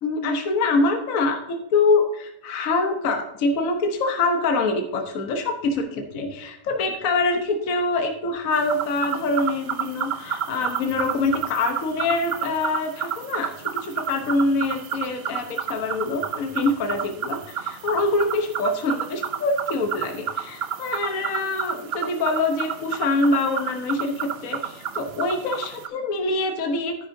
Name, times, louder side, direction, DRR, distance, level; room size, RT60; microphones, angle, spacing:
voice 1, 0.0-26.9, left 3 dB, 60° left, 4 dB, 1.4 m, -25 dB
sound 1, 8.5-25.9, right 8 dB, 60° right, 0.6 m, -31 dB
10.5 x 9.6 x 2.7 m, 0.86 s
omnidirectional pair, 1.8 m